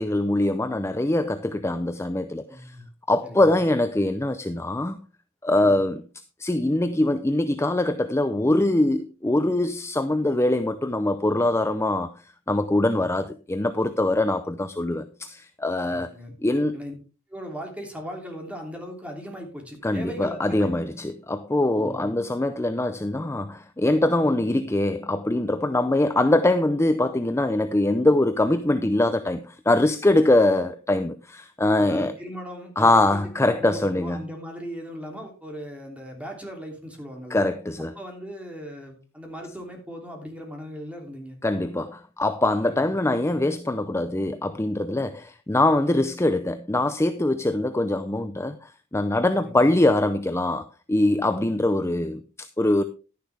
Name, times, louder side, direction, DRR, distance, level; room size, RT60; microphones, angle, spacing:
voice 1, 0.0-2.8 3.1-5.0 5.4-6.0 6.4-12.1 12.5-16.1 16.4-16.8 19.8-32.1 32.8-34.2 37.3-37.9 41.4-52.8, left 1 dB, 15° left, 0.5 m, -23 dB
voice 2, 2.5-2.9 3.2-3.5 15.8-16.3 16.7-16.9 17.3-20.9 21.8-22.1 24.2-24.3 31.8-33.2 33.5-37.4 37.9-41.4 42.6-42.9 49.3-49.7, equal, 5° right, 3.0 m, -38 dB
11.5 x 10.0 x 3.4 m
head